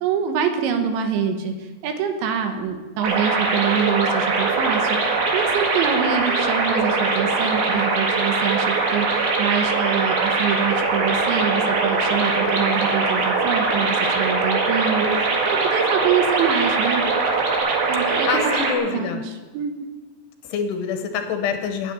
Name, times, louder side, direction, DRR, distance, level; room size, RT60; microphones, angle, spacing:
voice 1, 0.0-17.1 17.9-18.5 18.8-19.2 19.5-19.8, right 7 dB, 80° right, 6 dB, 3.4 m, -25 dB
sound 1, 3.0-18.7, right 4 dB, 60° right, 3.5 m, -22 dB
sound 2, 10.7-17.6, equal, 20° right, 4.0 m, -32 dB
voice 2, 18.3-19.2 20.4-21.9, left 6 dB, 75° left, 6 dB, 2.8 m, -26 dB
10.5 x 8.7 x 9.7 m, 1.3 s
omnidirectional pair, 5.3 m